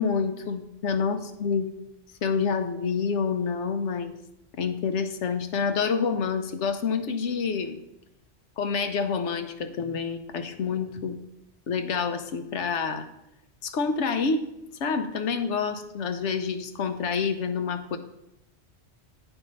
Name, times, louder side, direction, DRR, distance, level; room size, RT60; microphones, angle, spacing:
voice 1, 0.0-1.7 2.2-4.1 4.5-7.8 8.6-11.2 11.7-13.1 13.6-14.4 14.8-18.0, left 5 dB, 85° left, 8 dB, 1.1 m, -27 dB
9.0 x 4.5 x 5.4 m, 0.89 s
omnidirectional pair, 1.2 m